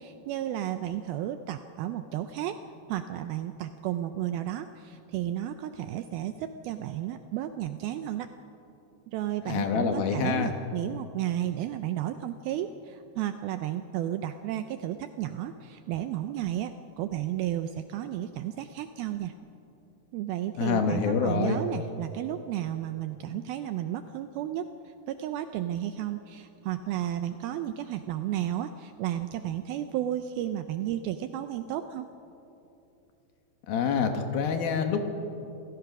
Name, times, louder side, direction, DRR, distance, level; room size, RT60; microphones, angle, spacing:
voice 1, 0.0-2.6 2.9-8.3 9.1-19.3 20.1-32.1, right 12 dB, 80° right, 9 dB, 2.2 m, -33 dB
voice 2, 9.5-10.5 20.6-21.6 33.7-35.0, left 6 dB, 70° left, 6 dB, 2.9 m, -26 dB
27.5 x 16.5 x 6.0 m, 2.8 s
omnidirectional pair, 4.9 m